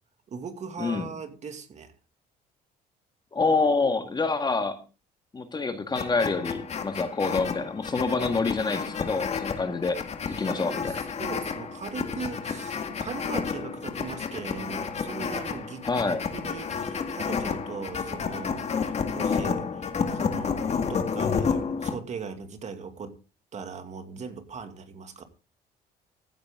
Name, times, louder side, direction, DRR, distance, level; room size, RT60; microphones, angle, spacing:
voice 1, 0.3-1.9 10.3-23.2 23.5-25.2, right 5 dB, 45° right, 2.4 m, -39 dB
voice 2, 0.8-1.1 3.3-4.8 5.3-10.0 10.3-11.0 15.8-16.2, left 3 dB, 25° left, 1.9 m, -27 dB
sound 1, 5.9-22.0, left 6 dB, 40° left, 2.0 m, -31 dB
15.5 x 10.0 x 3.8 m
cardioid pair, 110°, 17 cm